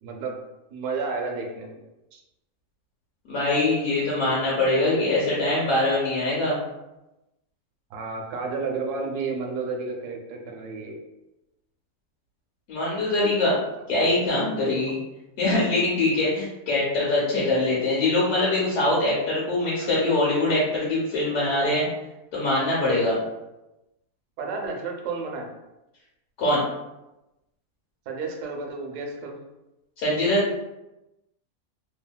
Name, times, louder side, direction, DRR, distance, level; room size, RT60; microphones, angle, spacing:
voice 1, 0.0-0.4 0.7-1.8 2.1-2.2 7.9-11.0 24.4-25.5 28.1-29.3, right 4 dB, 85° right, 1 dB, 1.1 m, -31 dB
voice 2, 3.3-6.6 12.7-13.6 13.9-15.0 15.4-21.9 22.3-23.2 26.4-26.6 30.0-30.4, left 2 dB, 90° left, -7 dB, 1.3 m, -23 dB
2.8 x 2.6 x 2.2 m, 0.96 s
omnidirectional pair, 1.7 m